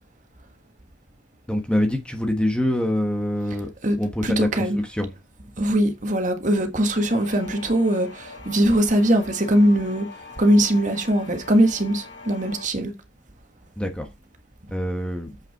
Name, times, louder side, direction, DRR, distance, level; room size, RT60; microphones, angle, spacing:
voice 1, 1.5-3.7 4.0-5.1 13.8-14.1 14.7-15.3, left 1 dB, 5° left, 1.2 m, -25 dB
voice 2, 4.2-4.8 5.6-12.9, right 1 dB, 40° right, 1.5 m, -21 dB
sound 1, 6.8-12.7, left 3 dB, 65° left, 3.5 m, -42 dB
7.8 x 5.9 x 4.6 m
head